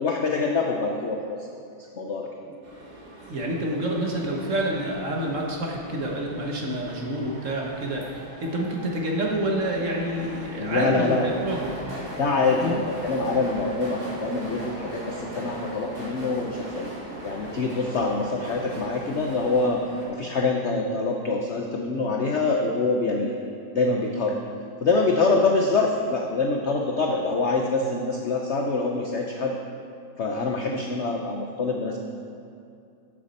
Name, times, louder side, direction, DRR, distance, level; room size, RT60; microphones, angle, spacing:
voice 1, 0.0-1.5 1.9-2.3 10.6-11.4 12.2-16.9 17.2-19.8 20.1-23.3 23.7-24.4 24.8-29.6 30.2-32.0, left 3 dB, 65° left, 1 dB, 0.7 m, -25 dB
sound 1, 2.6-20.1, right 1 dB, 30° right, 1.7 m, -39 dB
voice 2, 3.2-12.0 12.6-12.7, right 1 dB, 45° right, -1 dB, 1.3 m, -28 dB
12.0 x 7.4 x 4.2 m, 2.4 s
omnidirectional pair, 2.0 m